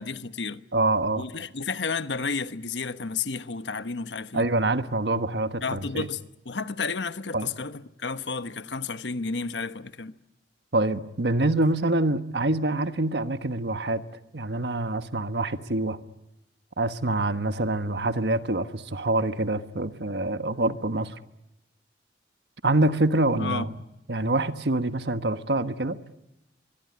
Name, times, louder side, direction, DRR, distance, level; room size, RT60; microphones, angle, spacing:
voice 1, 0.0-0.6 1.2-4.5 5.6-10.1 23.4-23.7, left 4 dB, 85° left, 1.1 m, -32 dB
voice 2, 0.7-1.2 4.3-6.1 7.3-7.5 10.7-14.0 14.3-16.0 16.8-21.2 22.6-23.8 24.1-26.0, right 2 dB, 70° right, 1.4 m, -25 dB
24.0 x 22.5 x 9.8 m
head